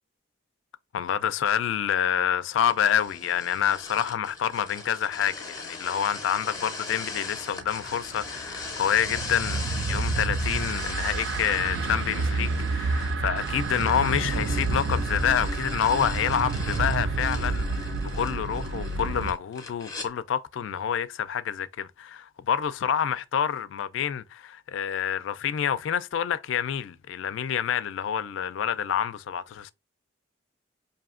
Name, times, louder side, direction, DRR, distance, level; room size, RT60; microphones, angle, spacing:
voice 1, 0.9-9.6 9.8-29.7, left 8 dB, 80° left, 0.3 m, -27 dB
sound 1, 2.6-20.1, left 3 dB, 20° left, 0.6 m, -39 dB
sound 2, 7.6-19.3, right 3 dB, 70° right, 0.4 m, -29 dB
4.9 x 2.6 x 2.4 m
head